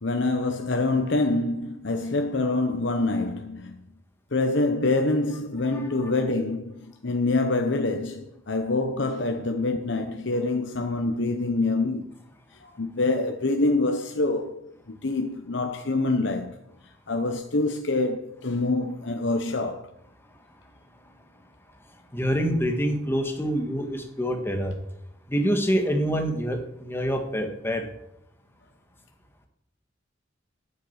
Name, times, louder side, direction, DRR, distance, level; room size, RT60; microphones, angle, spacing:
voice 1, 0.0-3.8 4.3-12.1 12.6-14.6 14.9-16.5 17.1-19.9, left 2 dB, 65° left, 0.9 m, -26 dB
voice 2, 22.1-24.7 25.3-27.8, equal, 10° left, 1.6 m, -26 dB
9.8 x 8.8 x 8.0 m
head